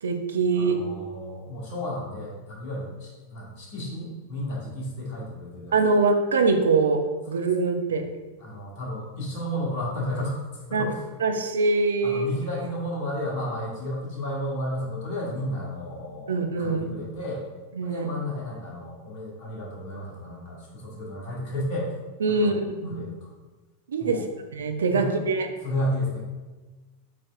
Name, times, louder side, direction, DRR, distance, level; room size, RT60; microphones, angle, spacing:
voice 1, 0.0-0.8 5.7-8.1 10.7-10.9 11.2-12.3 16.3-16.9 17.8-18.1 22.2-23.0 23.9-24.2 24.5-25.5, right 4 dB, 65° right, 6 dB, 0.5 m, -23 dB
voice 2, 0.5-6.0 7.3-7.4 8.4-11.0 12.0-17.5 17.8-22.0 22.3-22.6 22.8-23.3 24.0-24.2 24.8-25.2 25.6-26.2, left 1 dB, 40° left, -4 dB, 1.5 m, -32 dB
4.9 x 4.2 x 2.4 m, 1.2 s
figure-of-eight pair, 90°, 0 cm